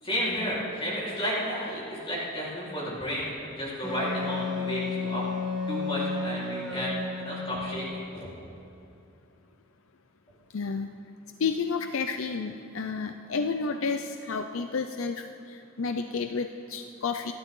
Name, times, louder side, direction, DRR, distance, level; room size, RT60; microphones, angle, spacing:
voice 1, 0.0-5.2 5.7-8.3, equal, 25° left, -7 dB, 4.2 m, -32 dB
Wind instrument woodwind instrument, 3.8-7.9, left 3 dB, ahead, 3.3 m, -32 dB
voice 2, 10.5-10.9 11.4-17.3, left 5 dB, 75° left, 7 dB, 0.6 m, -31 dB
27.5 x 12.0 x 3.8 m, 2.7 s
head